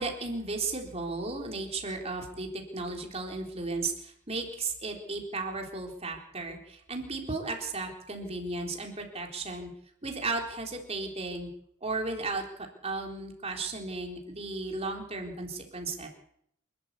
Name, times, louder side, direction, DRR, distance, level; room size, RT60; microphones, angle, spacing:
voice 1, 0.0-9.7 10.0-11.5 11.8-16.1, right 3 dB, 30° right, 2 dB, 3.9 m, -35 dB
27.0 x 12.5 x 8.4 m, 0.72 s
head